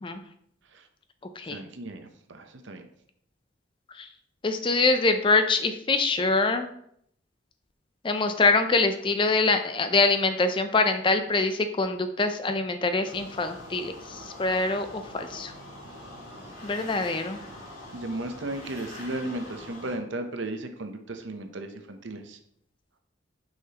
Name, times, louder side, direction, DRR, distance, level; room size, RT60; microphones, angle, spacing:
voice 1, 1.5-2.8 17.9-22.4, right 2 dB, 65° right, 7 dB, 0.7 m, -35 dB
voice 2, 4.4-6.7 8.0-15.5 16.6-17.4, left 3 dB, 25° left, 8 dB, 0.4 m, -24 dB
sound 1, 13.0-20.0, left 1 dB, 80° left, 2.5 m, -44 dB
6.2 x 5.7 x 2.9 m, 0.71 s
head